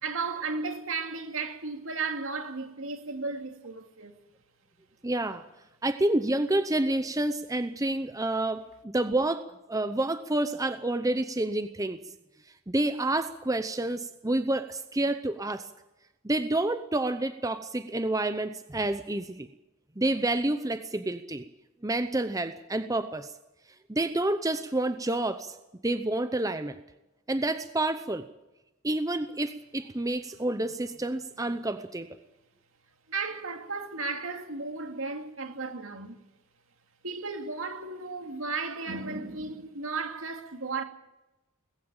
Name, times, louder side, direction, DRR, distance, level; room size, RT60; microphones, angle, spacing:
voice 1, 0.0-4.1 33.1-36.2 37.0-40.8, right 4 dB, 70° right, 2.6 m, -34 dB
voice 2, 5.0-5.4 5.8-9.4 9.7-12.0 12.7-15.7 16.2-19.5 20.0-21.4 21.8-23.3 23.9-25.6 25.8-26.8 27.3-28.2 28.8-32.1, right 2 dB, 15° right, 0.7 m, -29 dB
19.0 x 16.0 x 8.9 m
head